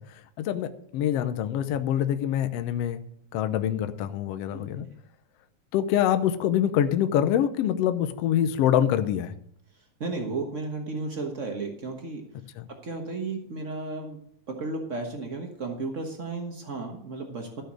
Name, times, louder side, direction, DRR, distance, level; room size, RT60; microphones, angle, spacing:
voice 1, 0.1-3.0 3.3-4.9 5.7-9.3 12.6-12.7, left 10 dB, 75° left, 9 dB, 1.4 m, -25 dB
voice 2, 10.0-12.2 12.8-14.2 14.5-17.6, right 3 dB, 85° right, 3 dB, 0.6 m, -33 dB
13.5 x 6.6 x 6.3 m, 0.65 s
omnidirectional pair, 3.6 m